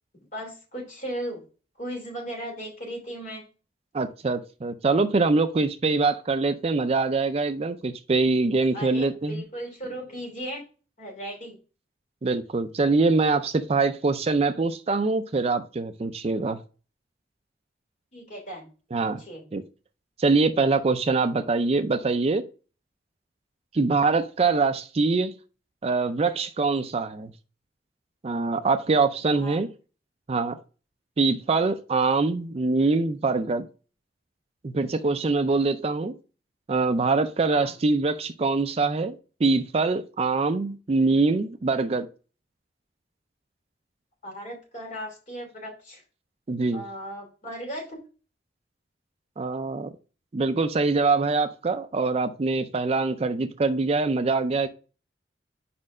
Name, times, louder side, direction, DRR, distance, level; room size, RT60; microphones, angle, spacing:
voice 1, 0.3-1.4 1.8-3.4 8.7-10.6 11.0-11.6 18.1-18.7 19.0-19.4 29.3-29.6 37.5-37.7 44.2-46.0 46.7-48.0, equal, 45° left, 0 dB, 3.0 m, -36 dB
voice 2, 3.9-9.4 12.2-16.6 18.9-19.2 19.5-19.6 20.2-22.4 23.7-25.3 25.8-27.3 28.2-29.7 30.3-30.6 31.2-33.7 34.6-36.1 36.7-42.1 46.5-46.8 49.4-49.9 50.3-54.7, right 3 dB, 35° right, 10 dB, 0.4 m, -24 dB
5.3 x 4.3 x 4.8 m, 0.35 s
head